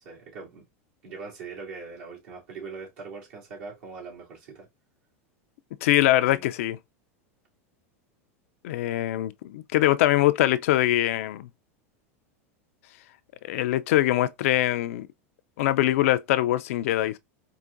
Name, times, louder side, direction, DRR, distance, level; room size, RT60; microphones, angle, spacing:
voice 1, 0.0-0.7 1.0-4.7 6.3-6.5, right 5 dB, 70° right, 2.5 m, -41 dB
voice 2, 5.8-6.8 8.6-11.5 13.4-15.1 15.6-17.2, left 14 dB, 70° left, 0.4 m, -23 dB
4.7 x 2.4 x 2.5 m
hypercardioid pair, 100°, 8 cm